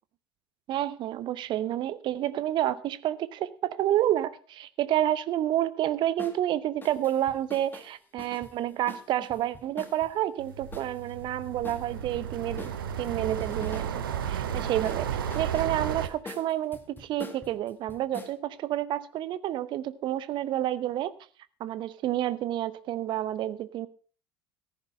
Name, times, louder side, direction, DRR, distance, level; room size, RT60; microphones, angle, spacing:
voice 1, 0.7-21.1 21.6-23.9, right 12 dB, 40° right, 16 dB, 0.8 m, -29 dB
sound 1, 6.2-6.4 6.8-10.1 10.7-12.2 12.6-13.9 14.2-18.3, left 3 dB, 15° left, 2.0 m, -46 dB
sound 2, 10.4-16.1, right 8 dB, 70° right, 0.9 m, -33 dB
14.5 x 10.5 x 4.2 m, 0.39 s
figure-of-eight pair, 70°, 12 cm